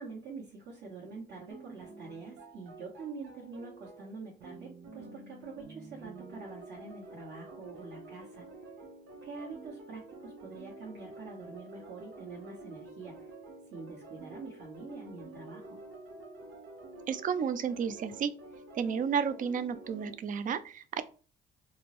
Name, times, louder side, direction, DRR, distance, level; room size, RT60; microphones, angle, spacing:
voice 1, 0.0-8.5 9.2-13.3 13.7-15.8, right 4 dB, 65° right, -4 dB, 1.2 m, -46 dB
sound 1, 1.5-20.1, right 2 dB, 85° right, 0.9 m, -49 dB
voice 2, 17.1-18.3 18.8-21.0, right 7 dB, 45° right, 12 dB, 0.4 m, -32 dB
3.4 x 2.0 x 2.9 m, 0.37 s
cardioid pair, 90°, 20 cm